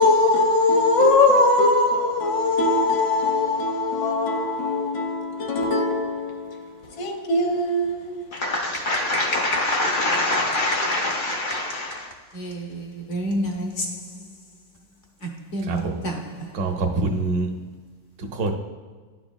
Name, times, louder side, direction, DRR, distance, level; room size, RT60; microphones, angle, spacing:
voice 1, 0.0-8.1, left 2 dB, 90° left, 1.6 m, -21 dB
voice 2, 8.3-14.2 15.2-16.6, left 1 dB, 60° left, 0.9 m, -26 dB
voice 3, 15.7-16.0 16.5-17.5 18.3-18.5, right 3 dB, 70° right, 1.2 m, -25 dB
11.0 x 4.9 x 2.2 m
omnidirectional pair, 1.9 m